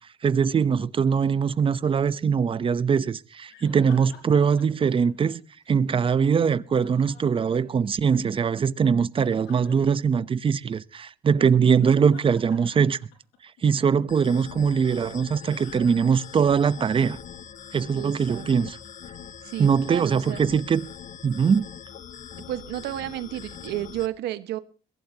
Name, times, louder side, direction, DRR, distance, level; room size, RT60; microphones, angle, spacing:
voice 1, 0.2-5.4 5.7-13.0 13.6-17.2 17.7-18.8 19.6-20.9 21.2-21.7, right 6 dB, 30° right, 0.8 m, -22 dB
sound 1, 3.5-5.8 6.6-8.0 9.1-9.9 11.6-13.6 15.4-16.2 16.5-16.6 19.5-19.6, left 6 dB, 85° left, 5.4 m, -52 dB
sound 2, 14.1-24.1, left 8 dB, 50° left, 1.2 m, -42 dB
voice 2, 18.0-18.5 19.4-20.5 22.5-24.6, right 14 dB, 85° right, 1.4 m, -32 dB
22.0 x 16.0 x 2.9 m
cardioid pair, 110°, 17 cm